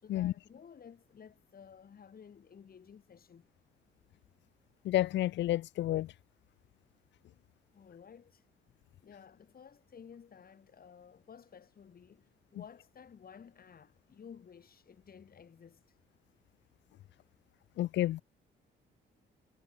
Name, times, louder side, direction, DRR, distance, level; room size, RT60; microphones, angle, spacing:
voice 1, 0.0-3.5 7.7-8.4 9.0-15.8, left 7 dB, 50° left, 5.0 m, -54 dB
voice 2, 4.9-6.1 17.8-18.2, left 14 dB, 65° left, 0.4 m, -30 dB
cardioid pair, 90°, 20 cm